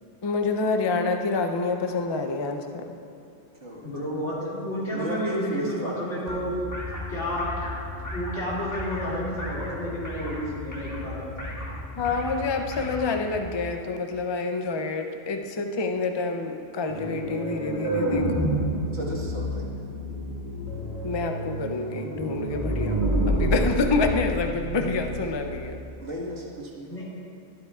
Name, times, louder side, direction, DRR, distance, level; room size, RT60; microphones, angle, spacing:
voice 1, 0.2-2.8 12.0-18.5 21.0-23.0 23.3-25.8, left 3 dB, 35° left, 5 dB, 0.4 m, -27 dB
voice 2, 3.8-6.6 7.1-7.7 8.1-11.5 26.9-27.0, equal, 85° left, -8 dB, 2.8 m, -31 dB
voice 3, 4.9-5.9 18.9-19.7 26.0-26.9, right 1 dB, 80° right, -4 dB, 2.0 m, -33 dB
sound 1, 6.3-13.4, left 1 dB, 15° left, 1.3 m, -36 dB
sound 2, 16.9-25.6, right 1 dB, 40° right, 2.1 m, -28 dB
12.5 x 11.5 x 2.4 m, 2.6 s
omnidirectional pair, 1.2 m